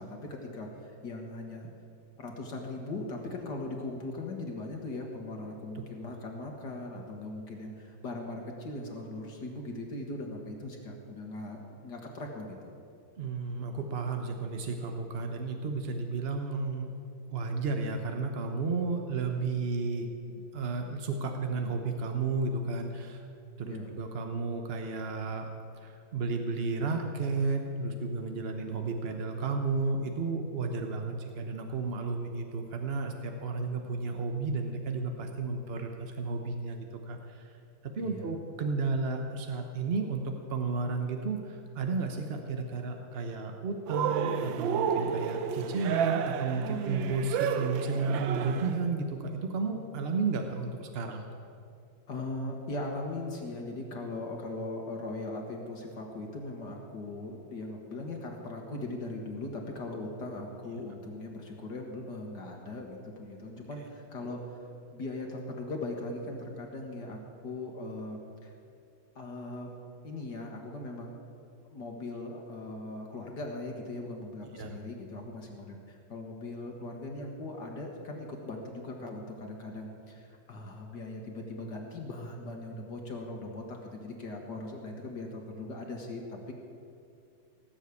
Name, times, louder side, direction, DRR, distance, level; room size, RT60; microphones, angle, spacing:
voice 1, 0.0-1.7 2.2-12.7 23.6-23.9 38.0-38.3 52.1-68.5 69.2-69.7 70.0-71.1 71.6-86.5, left 2 dB, 55° left, 1 dB, 2.0 m, -39 dB
voice 2, 13.2-16.9 17.3-20.1 20.5-23.2 23.6-25.5 25.8-37.5 38.0-51.2 74.5-74.8, right 4 dB, 50° right, 4 dB, 0.7 m, -33 dB
Cheering, 43.9-48.8, right 7 dB, 75° right, 1.4 m, -31 dB
17.5 x 7.3 x 8.4 m, 2.5 s
omnidirectional pair, 2.2 m